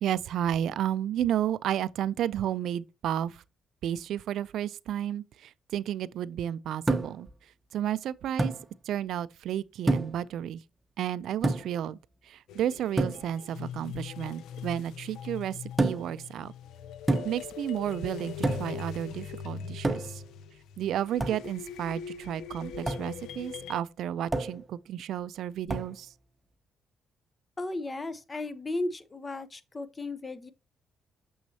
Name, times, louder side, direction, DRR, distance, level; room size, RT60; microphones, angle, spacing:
voice 1, 0.0-3.4 3.8-7.3 7.7-8.5 8.9-10.6 11.0-12.0 12.3-15.5 15.8-16.5 17.2-18.3 18.6-20.2 20.8-26.1, right 10 dB, 75° right, 0.3 m, -32 dB
sound 1, 6.9-7.3 8.4-8.6 9.9-10.3 11.4-11.8 13.0-13.3 15.8-16.2 17.1-17.5 18.4-18.8 19.8-20.3 21.2-21.4 22.9-23.1 24.3-24.6 25.7-26.0, right 2 dB, 20° right, 0.8 m, -28 dB
sound 2, 12.5-23.8, left 7 dB, 85° left, 0.5 m, -41 dB
voice 2, 27.6-30.5, left 2 dB, 25° left, 0.7 m, -35 dB
6.3 x 6.0 x 2.8 m
cardioid pair, 90°, 0 cm